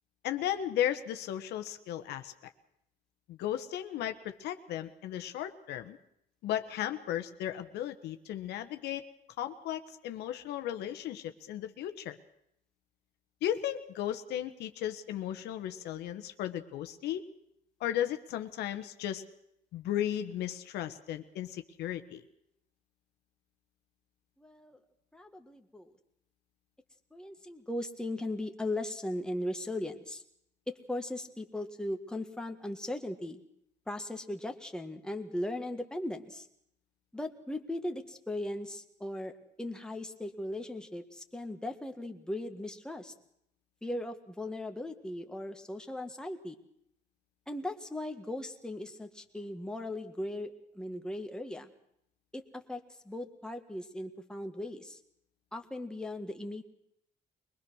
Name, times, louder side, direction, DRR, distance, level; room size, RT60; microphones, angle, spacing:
voice 1, 0.2-2.5 3.3-6.0 6.4-9.0 9.4-12.2 13.4-17.3 17.8-19.2 19.7-22.2, left 11 dB, 80° left, 8 dB, 1.4 m, -35 dB
voice 2, 24.4-24.8 25.1-25.9 27.1-30.2 30.7-33.4 33.9-36.5 37.1-39.3 39.6-43.1 43.8-46.6 47.5-51.7 52.3-55.0 55.5-56.6, left 1 dB, 5° left, 4 dB, 1.8 m, -38 dB
23.0 x 20.0 x 6.4 m, 0.75 s
cardioid pair, 110°, 17 cm